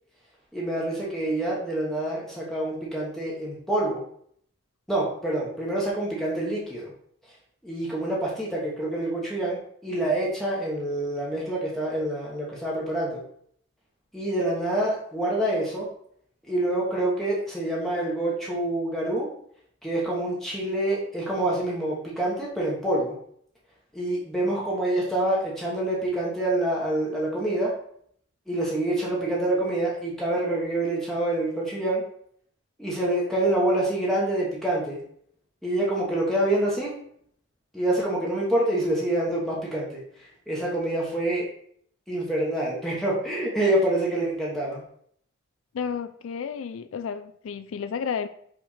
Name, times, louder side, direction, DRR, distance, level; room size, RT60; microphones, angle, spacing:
voice 1, 0.5-4.0 4.9-6.9 7.3-7.4 7.6-13.2 14.1-15.9 16.4-19.3 19.8-23.2 23.9-27.7 28.5-32.0 32.8-35.0 35.6-37.0 37.7-41.5 42.1-44.8, right 1 dB, ahead, -5 dB, 1.1 m, -26 dB
voice 2, 45.7-48.3, left 6 dB, 80° left, 11 dB, 0.4 m, -32 dB
5.0 x 3.4 x 5.6 m, 0.65 s
head